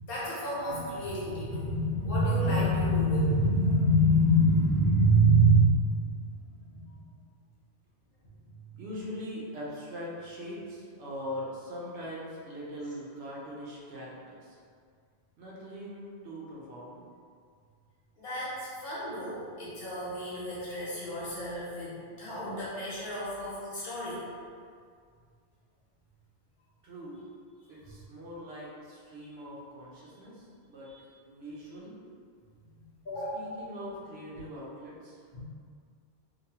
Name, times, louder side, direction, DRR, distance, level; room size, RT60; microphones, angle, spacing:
voice 1, 0.1-6.3 6.6-7.1 18.2-24.2 30.8-30.9 32.8-33.3 35.3-35.4, right 1 dB, 60° left, -9 dB, 1.0 m, -27 dB
voice 2, 8.8-14.6 15.4-17.0 26.8-27.2 27.7-30.9 31.2-32.0 33.3-35.2, equal, 75° right, -5 dB, 0.9 m, -41 dB
3.0 x 2.1 x 2.8 m, 2.2 s
omnidirectional pair, 1.1 m